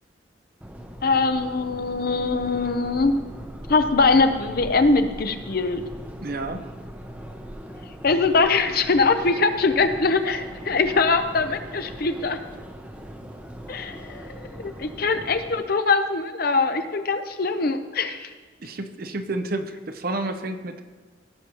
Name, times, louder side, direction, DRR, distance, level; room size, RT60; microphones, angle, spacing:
Subway metro underground, 0.6-15.6, equal, 10° right, 0.7 m, -40 dB
voice 1, 1.0-3.2 3.7-5.8 8.0-12.4 13.7-18.3, left 3 dB, 50° left, 8 dB, 0.7 m, -22 dB
voice 2, 6.2-6.7 18.6-20.8, right 2 dB, 50° right, 8 dB, 0.7 m, -30 dB
17.0 x 6.9 x 3.0 m, 1.4 s
head